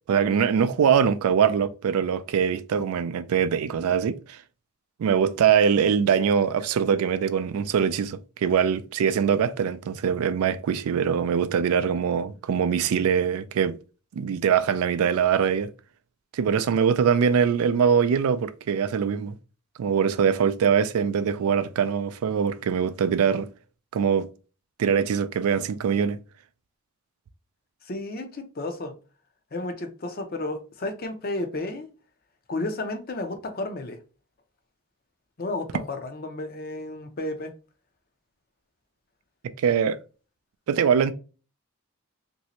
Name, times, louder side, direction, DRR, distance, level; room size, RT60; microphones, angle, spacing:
voice 1, 0.1-4.4 5.0-13.7 14.1-15.7 16.3-19.3 19.8-23.5 23.9-24.3 24.8-26.2 39.6-40.0 40.7-41.1, right 7 dB, 75° right, 0.3 m, -23 dB
voice 2, 27.8-28.9 29.5-31.9 32.5-34.0 35.4-37.5, left 2 dB, 40° left, 0.5 m, -32 dB
3.2 x 2.7 x 2.9 m
head